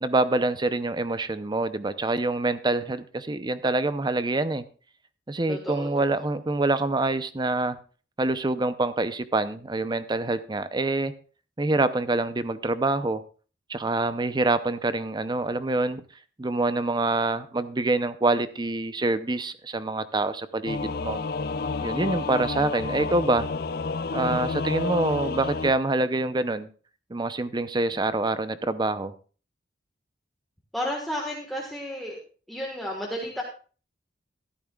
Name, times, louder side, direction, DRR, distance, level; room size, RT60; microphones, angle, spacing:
voice 1, 0.0-4.6 5.3-7.8 8.2-11.1 11.6-13.2 13.7-16.0 16.4-21.2 21.8-23.5 24.1-26.7 27.1-29.1, right 2 dB, 25° right, 13 dB, 0.6 m, -26 dB
voice 2, 5.5-5.9 30.7-32.2 32.5-33.4, equal, ahead, -2 dB, 1.5 m, -32 dB
Singing / Musical instrument, 20.7-25.7, left 4 dB, 55° left, 0.5 m, -30 dB
14.0 x 12.0 x 2.4 m, 0.38 s
head